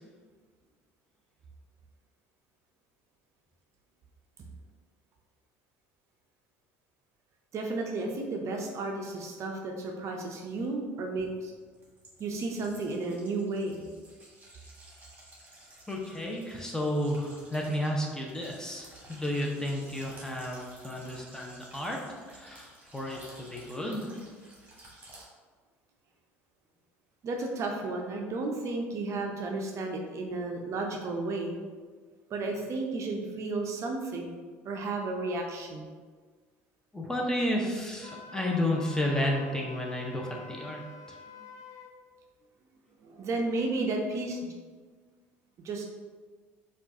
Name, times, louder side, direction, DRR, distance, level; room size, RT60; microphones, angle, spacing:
voice 1, 7.5-11.5 12.2-13.9 27.2-31.6 32.3-34.4 34.6-35.9 43.0-44.5 45.6-45.9, right 2 dB, 45° right, 1 dB, 0.5 m, -33 dB
sound 1, 9.9-10.0 11.2-25.2, right 1 dB, 25° right, 1.3 m, -53 dB
voice 2, 15.9-22.0 22.3-24.1 36.9-40.8 41.1-41.2, left 1 dB, 10° left, -1 dB, 0.8 m, -32 dB
Wind instrument woodwind instrument, 38.0-41.9, left 5 dB, 50° left, 0.5 m, -47 dB
4.4 x 2.4 x 2.7 m, 1.5 s
hypercardioid pair, 65°, 7 cm